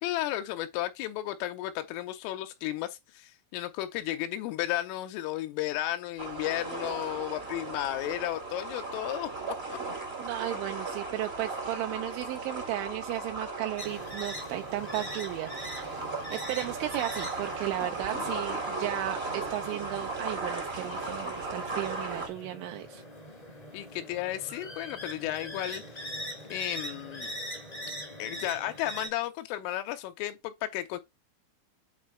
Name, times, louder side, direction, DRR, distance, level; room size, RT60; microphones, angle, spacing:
voice 1, 0.0-9.8 23.7-25.8 26.5-27.3 28.2-31.0, left 14 dB, 85° left, 3.2 m, -33 dB
sound 1, 6.2-22.3, right 3 dB, 55° right, 0.6 m, -36 dB
voice 2, 10.2-23.0, right 15 dB, 85° right, 2.8 m, -35 dB
sound 2, 13.8-29.1, equal, 25° left, 0.8 m, -42 dB
8.3 x 4.1 x 4.4 m
omnidirectional pair, 5.9 m